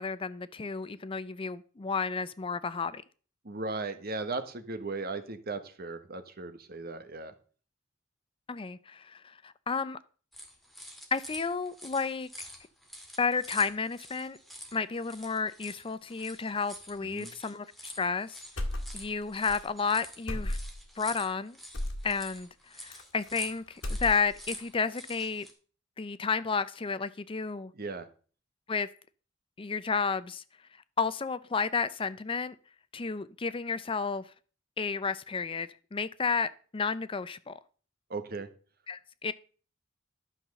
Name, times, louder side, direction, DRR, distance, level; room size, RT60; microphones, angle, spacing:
voice 1, 0.0-3.0 8.5-10.0 11.1-12.3 13.2-14.4 14.7-18.4 18.9-20.6 21.0-21.6 22.0-22.5 22.7-25.5 26.0-27.7 28.7-28.9 29.6-30.4 31.0-32.5 32.9-34.2 34.8-37.6 38.9-39.3, left 5 dB, 25° left, 0.5 m, -32 dB
voice 2, 3.4-7.3 17.0-17.3 27.7-28.1 38.1-38.5, right 3 dB, 50° right, 1.2 m, -37 dB
sound 1, 10.3-25.5, equal, ahead, 2.1 m, -47 dB
sound 2, 18.6-19.2 19.5-19.6 20.3-20.9 21.7-22.1 22.9-23.5 23.7-24.5, left 1 dB, 70° left, 2.1 m, -34 dB
12.0 x 5.7 x 6.7 m
head